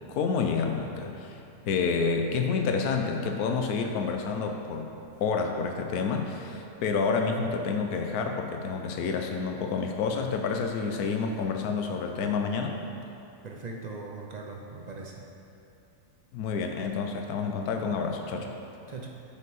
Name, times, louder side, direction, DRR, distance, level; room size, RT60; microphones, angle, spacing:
voice 1, 0.1-4.9 5.2-12.8 16.3-18.6, left 5 dB, 85° left, 3 dB, 1.2 m, -29 dB
voice 2, 13.4-15.3 18.9-19.1, right 3 dB, 60° right, 0 dB, 0.4 m, -40 dB
11.5 x 5.3 x 4.0 m, 2.8 s
omnidirectional pair, 1.6 m